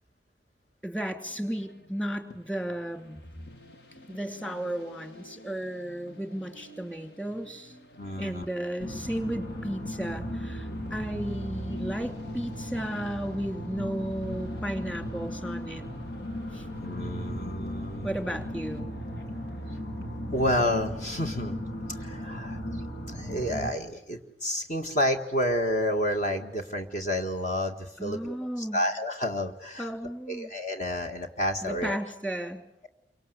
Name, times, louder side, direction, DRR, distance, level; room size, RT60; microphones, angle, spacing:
voice 1, 0.8-3.2 4.1-7.8 8.2-15.8 16.5-16.7 18.0-18.9 28.0-28.8 29.8-30.5 31.6-32.6, equal, 5° left, 7 dB, 2.6 m, -34 dB
sound 1, 1.3-20.5, left 1 dB, 70° left, 2.2 m, -52 dB
voice 2, 8.0-8.5 16.8-18.1 20.3-21.6 21.9-22.6 23.1-29.9 30.3-32.0, left 1 dB, 45° left, 4 dB, 1.9 m, -30 dB
sound 2, 8.8-23.7, equal, 85° left, 3.0 m, -36 dB
28.5 x 25.0 x 8.1 m, 0.82 s
head